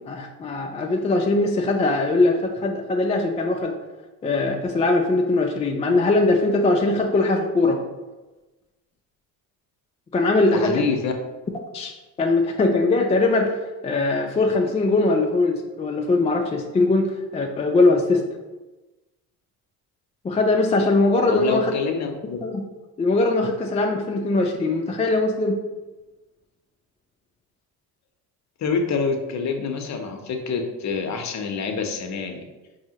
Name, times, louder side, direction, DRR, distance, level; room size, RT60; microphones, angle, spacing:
voice 1, 0.0-3.7 4.2-7.8 10.1-10.8 11.7-11.9 12.2-18.2 20.2-21.7 22.4-22.6 23.0-25.6, left 2 dB, 15° left, 2 dB, 0.3 m, -21 dB
voice 2, 10.5-11.1 21.3-22.4 28.6-32.4, left 5 dB, 40° left, 4 dB, 0.7 m, -26 dB
4.7 x 2.7 x 2.9 m, 1.1 s
supercardioid pair, 70°, 42 cm